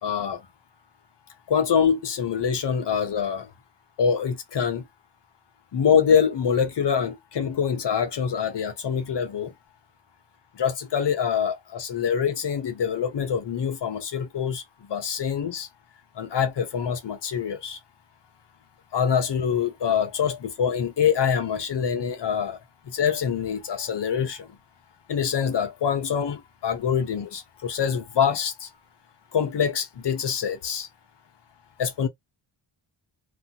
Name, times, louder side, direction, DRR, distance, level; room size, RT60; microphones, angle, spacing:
voice 1, 0.0-0.4 1.5-3.5 4.0-4.8 5.7-9.5 10.6-14.6 14.9-15.7 16.2-17.8 18.9-22.6 22.9-24.5 25.1-28.7 29.3-30.9 31.8-32.1, left 7 dB, 60° left, 1.1 m, -25 dB
2.9 x 2.5 x 3.9 m
wide cardioid pair, 145°, 48 cm